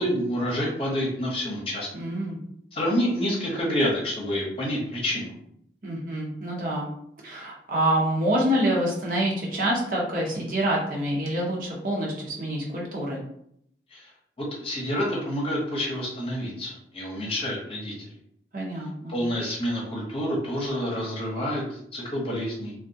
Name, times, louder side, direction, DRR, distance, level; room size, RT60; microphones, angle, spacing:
voice 1, 0.0-1.9 2.7-5.3 13.9-14.1 14.4-18.1 19.1-22.7, equal, 30° left, -3 dB, 0.8 m, -28 dB
voice 2, 1.9-2.4 5.8-6.9 7.2-13.2 18.5-19.2, right 1 dB, 50° right, -3 dB, 0.8 m, -26 dB
3.5 x 2.3 x 2.7 m, 0.71 s
head